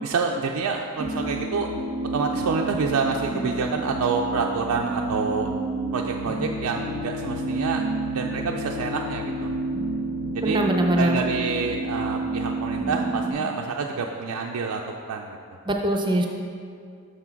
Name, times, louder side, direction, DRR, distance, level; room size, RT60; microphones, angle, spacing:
voice 1, 0.0-1.7 2.1-5.5 5.9-7.8 8.1-9.5 10.3-10.6 11.0-14.8 15.1-15.4, right 4 dB, 85° right, 1 dB, 0.4 m, -27 dB
sound 1, 1.0-12.8, left 2 dB, 65° left, 0.5 m, -43 dB
sound 2, 1.0-13.3, right 2 dB, 30° left, 1.9 m, -30 dB
voice 2, 10.4-11.2 15.6-16.3, right 1 dB, 20° right, 2 dB, 0.5 m, -22 dB
6.3 x 6.0 x 4.5 m, 2.4 s
head